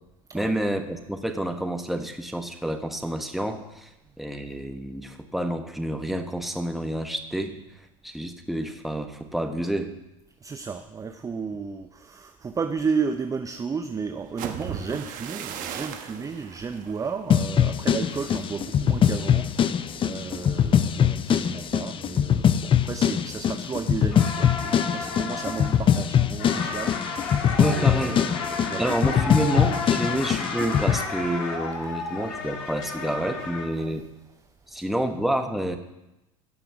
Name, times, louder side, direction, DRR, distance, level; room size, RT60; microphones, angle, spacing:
voice 1, 0.3-3.9 4.2-7.6 8.0-9.9 27.6-28.2 28.8-34.1 34.7-35.8, right 1 dB, ahead, 5 dB, 1.4 m, -28 dB
voice 2, 10.4-29.4 29.9-30.2 33.8-34.0, right 5 dB, 20° right, 8 dB, 0.6 m, -33 dB
sound 1, 14.2-22.1 22.4-22.8 23.1-23.5, right 8 dB, 50° right, 1.2 m, -40 dB
sound 2, 17.3-31.0, left 9 dB, 30° left, 0.6 m, -23 dB
sound 3, 24.1-33.6, left 4 dB, 70° left, 2.1 m, -32 dB
16.5 x 5.9 x 6.1 m, 0.93 s
hypercardioid pair, 80°, 18 cm